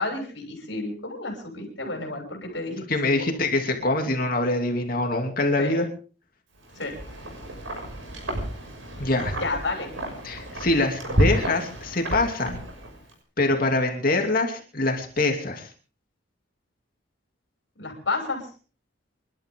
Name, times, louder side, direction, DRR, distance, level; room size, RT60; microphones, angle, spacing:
voice 1, 0.0-2.8 5.6-5.8 6.7-7.0 9.4-9.9 17.8-18.5, left 3 dB, 65° left, 0 dB, 6.6 m, -30 dB
voice 2, 2.9-5.9 9.0-9.4 10.2-12.6 13.4-15.7, left 2 dB, 45° left, 3 dB, 2.7 m, -24 dB
Wind, 6.6-13.1, right 1 dB, 85° right, 6.2 m, -30 dB
28.5 x 12.5 x 3.7 m, 0.38 s
head